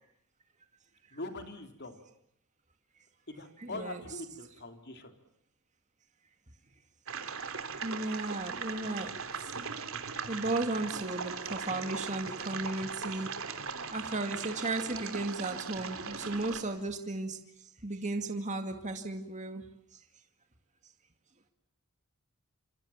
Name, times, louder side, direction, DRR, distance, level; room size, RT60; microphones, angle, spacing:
voice 1, 1.1-2.0 3.3-5.1, left 2 dB, 50° left, 6 dB, 3.7 m, -42 dB
voice 2, 3.6-4.0 7.2-7.4 7.7-9.1 9.4-9.5 10.3-13.4 13.9-20.0 20.8-20.9, right 2 dB, 35° right, 5 dB, 2.3 m, -35 dB
sound 1, 7.1-16.6, right 5 dB, 65° right, 3.2 m, -39 dB
27.0 x 27.0 x 7.3 m, 0.76 s
head